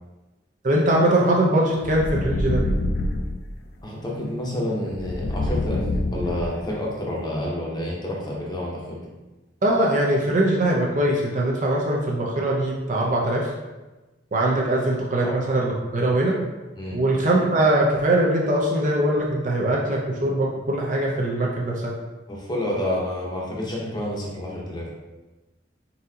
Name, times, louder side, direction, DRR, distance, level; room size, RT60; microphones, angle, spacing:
voice 1, 0.6-2.6 9.6-13.5 14.3-16.4 16.9-21.9, right 1 dB, 40° right, -2 dB, 0.6 m, -21 dB
sound 1, 1.8-3.4 4.9-6.7, left 1 dB, 60° left, 0.4 m, -26 dB
voice 2, 3.8-5.8 6.1-9.0 15.2-15.3 16.8-17.0 22.3-24.9, left 1 dB, 20° left, -3 dB, 0.8 m, -29 dB
4.1 x 3.7 x 2.7 m, 1.1 s
head